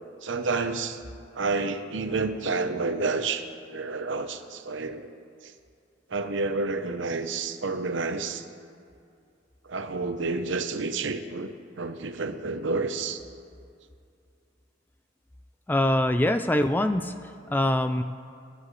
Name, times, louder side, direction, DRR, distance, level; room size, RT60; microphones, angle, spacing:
voice 1, 0.2-1.0 1.3-5.1 5.4-5.5 6.1-8.4 9.6-13.2, right 3 dB, 70° right, 8 dB, 0.9 m, -29 dB
voice 2, 15.7-17.1 17.5-18.0, left 1 dB, 10° left, 8 dB, 0.3 m, -23 dB
27.5 x 10.5 x 3.2 m, 2.4 s
head